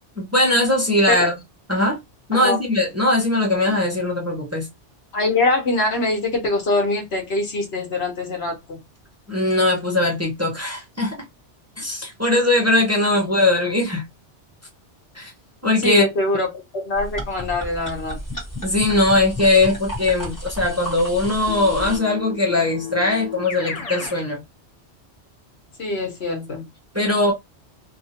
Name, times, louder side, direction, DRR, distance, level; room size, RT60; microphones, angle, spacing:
voice 1, 0.2-1.3 1.7-2.0 2.3-4.7 9.3-11.2 11.8-14.0 15.1-15.3 15.6-16.1 18.6-24.4 26.9-27.3, left 2 dB, 15° right, 0.9 m, -20 dB
voice 2, 5.1-8.8 15.8-16.5 16.7-18.2 25.8-26.7, left 2 dB, 65° left, 1.4 m, -23 dB
sound 1, 17.0-22.0, equal, 15° left, 1.5 m, -32 dB
Keyboard (musical), 21.5-24.2, left 7 dB, 40° left, 0.7 m, -33 dB
2.9 x 2.6 x 2.8 m
omnidirectional pair, 1.2 m